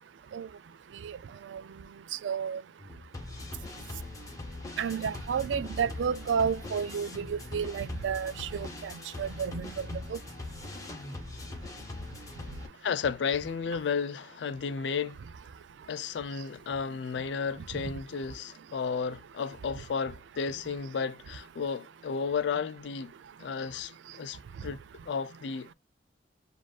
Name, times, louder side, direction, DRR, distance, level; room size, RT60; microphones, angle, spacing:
voice 1, 2.2-2.6 4.8-8.9 9.2-10.2, right 7 dB, 85° right, 0.4 m, -31 dB
sound 1, 2.8-12.7, left 2 dB, 20° left, 1.1 m, -41 dB
voice 2, 12.8-15.2 15.9-23.1 23.4-24.8 25.1-25.7, left 6 dB, 70° left, 0.4 m, -33 dB
7.3 x 2.5 x 2.3 m
head